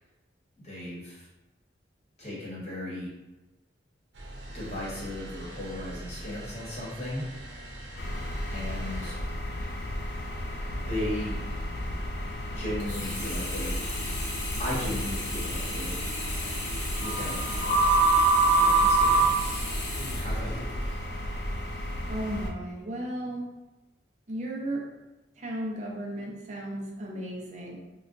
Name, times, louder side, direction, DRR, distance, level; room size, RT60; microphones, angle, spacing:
voice 1, 0.6-1.3 2.2-3.1 4.5-7.3 8.5-9.2 10.7-11.4 12.5-13.8 14.6-16.0 17.0-17.9 18.6-19.7 20.1-20.7, left 1 dB, 35° left, -6 dB, 1.0 m, -36 dB
sound 1, 4.1-9.3, right 1 dB, 80° right, 0.7 m, -42 dB
sound 2, 8.0-22.5, right 2 dB, 60° left, 0.4 m, -28 dB
Sink (filling or washing), 12.8-21.0 21.6-21.7, left 1 dB, 80° left, 0.9 m, -37 dB
voice 2, 22.1-23.5 24.3-24.9 25.4-27.8, right 1 dB, 40° right, -1 dB, 0.4 m, -35 dB
3.9 x 2.1 x 2.5 m, 1.1 s
head